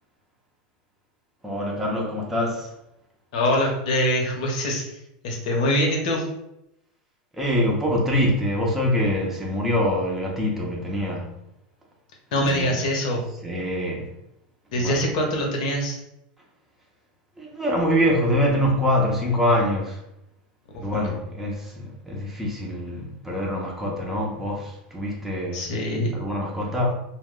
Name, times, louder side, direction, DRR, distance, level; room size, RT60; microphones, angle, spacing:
voice 1, 1.4-2.7 7.3-11.4 12.4-12.8 13.4-14.1 14.8-15.0 17.4-20.0 20.8-25.7 26.1-26.9, left 1 dB, 5° right, -3 dB, 0.6 m, -24 dB
voice 2, 3.3-4.8 5.2-6.2 12.3-13.2 14.7-16.0 20.7-21.1 25.5-26.1, equal, 70° left, 0 dB, 0.8 m, -24 dB
2.2 x 2.0 x 3.5 m, 0.83 s
supercardioid pair, 125°, 4 cm